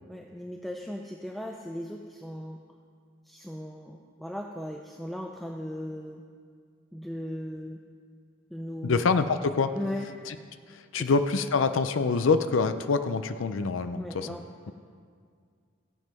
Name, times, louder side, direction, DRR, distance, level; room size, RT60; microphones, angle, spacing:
voice 1, 0.1-2.6 3.3-6.2 6.9-7.8 8.5-9.1 9.7-10.1 11.0-11.1 13.9-14.7, equal, ahead, 2 dB, 0.4 m, -37 dB
voice 2, 8.8-9.7 10.3-10.4 10.7-14.4, left 4 dB, 75° left, 10 dB, 0.5 m, -26 dB
16.0 x 7.5 x 5.2 m, 2.1 s
head